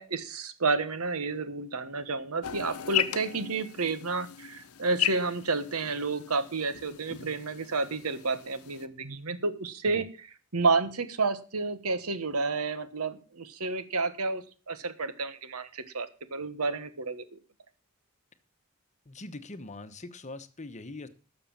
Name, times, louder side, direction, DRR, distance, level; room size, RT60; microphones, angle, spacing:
voice 1, 0.0-17.4, right 3 dB, 85° right, 12 dB, 1.4 m, -30 dB
sound 1, 2.4-8.9, left 11 dB, 80° left, 0.9 m, -36 dB
voice 2, 19.1-21.1, left 2 dB, 35° left, 11 dB, 1.0 m, -42 dB
12.5 x 7.0 x 7.2 m, 0.37 s
head